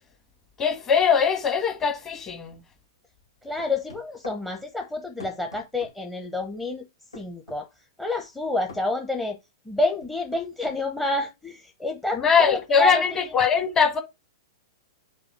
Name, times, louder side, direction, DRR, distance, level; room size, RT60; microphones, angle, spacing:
voice 1, 0.6-2.6 12.1-14.0, left 6 dB, 25° left, 1.6 m, -21 dB
voice 2, 3.4-6.9 7.1-7.7 8.0-9.4 9.6-13.0, left 2 dB, 5° left, 0.9 m, -28 dB
sound 1, 3.6-4.4 5.2-6.0 7.1-7.6 8.7-8.9 10.0-10.8, left 3 dB, 90° left, 2.1 m, -44 dB
5.3 x 4.1 x 6.0 m
hypercardioid pair, 110°, 3 cm